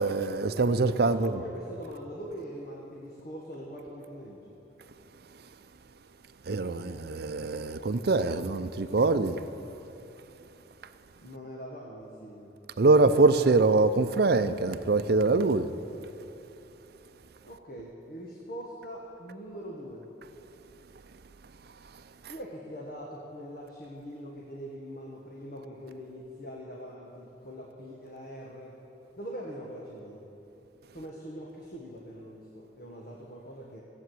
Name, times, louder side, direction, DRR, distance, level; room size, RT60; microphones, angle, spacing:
voice 1, 0.0-1.3 6.5-9.4 12.8-15.7, right 3 dB, 60° right, 0.6 m, -24 dB
voice 2, 1.0-4.6 11.2-12.5 17.5-20.1 22.3-28.7 29.2-30.2 30.9-33.8, equal, 55° left, 1.4 m, -42 dB
15.5 x 8.4 x 7.8 m
head